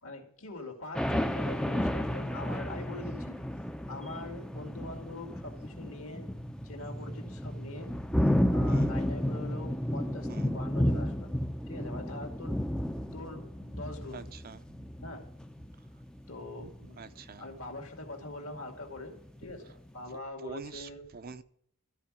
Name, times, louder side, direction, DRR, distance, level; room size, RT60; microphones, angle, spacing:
voice 1, 0.0-3.4 3.9-6.3 6.6-7.9 8.5-11.3 11.7-12.6 13.1-14.3 15.0-15.3 16.3-17.1 17.4-21.0, left 2 dB, 65° left, 2.3 m, -43 dB
sound 1, 0.9-17.2 17.4-18.2 18.6-18.8 19.2-19.7, equal, 5° left, 0.5 m, -32 dB
voice 2, 14.1-14.6 17.0-17.5 20.4-21.4, right 5 dB, 45° right, 0.6 m, -45 dB
13.5 x 5.0 x 8.3 m
head